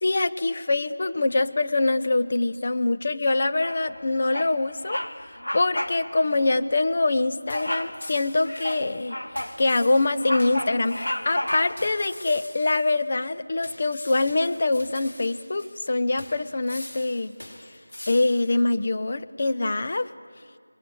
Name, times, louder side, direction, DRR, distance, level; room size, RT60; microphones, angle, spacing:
voice 1, 0.0-9.2 9.6-17.3 18.1-20.1, left 2 dB, 35° left, 9 dB, 1.0 m, -24 dB
Bird vocalization bird call bird song, 3.6-4.0 4.3-4.6 4.8-5.1 5.4-6.0 6.3-6.5 7.5-8.0 8.4-9.6 10.0-11.9, left 1 dB, 85° left, 2.6 m, -31 dB
sound 1, 7.5-8.9 9.4-13.0 13.6-15.9 16.2-18.6, left 1 dB, 65° left, 5.4 m, -44 dB
27.5 x 23.0 x 7.9 m, 2.1 s
figure-of-eight pair, 170°, 0 cm